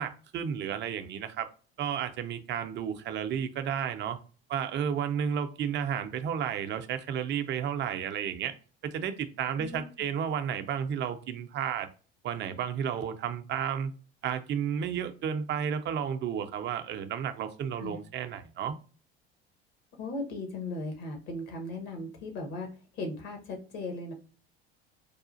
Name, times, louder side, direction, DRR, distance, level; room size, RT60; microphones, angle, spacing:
voice 1, 0.0-1.5 1.8-4.2 4.5-8.6 8.8-11.9 12.2-13.9 14.2-18.7, right 8 dB, 35° right, 0.5 m, -32 dB
voice 2, 9.6-10.1 17.8-18.0 20.0-24.1, left 2 dB, 60° left, 1.1 m, -37 dB
4.8 x 2.4 x 2.5 m
figure-of-eight pair, 65°, 31 cm